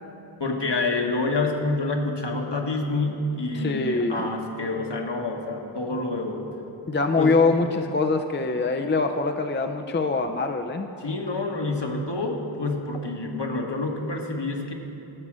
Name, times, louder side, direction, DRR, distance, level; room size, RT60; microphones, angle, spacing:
voice 1, 0.4-6.5 7.1-7.4 11.0-14.7, left 2 dB, 60° left, 2 dB, 1.3 m, -27 dB
voice 2, 3.5-4.3 6.9-10.9, left 3 dB, 25° left, 6 dB, 0.4 m, -24 dB
13.5 x 4.9 x 7.4 m, 3.0 s
wide cardioid pair, 50°, 48 cm